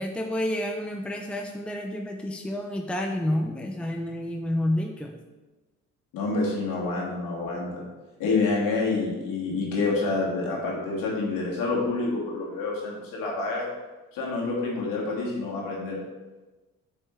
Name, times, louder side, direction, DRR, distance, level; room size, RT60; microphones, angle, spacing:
voice 1, 0.0-5.1, left 1 dB, 5° left, 2 dB, 0.7 m, -29 dB
voice 2, 6.1-7.8 8.2-13.7 14.1-16.0, left 3 dB, 75° left, -3 dB, 2.2 m, -28 dB
8.1 x 5.5 x 3.2 m, 1.2 s
supercardioid pair, 65°, 34 cm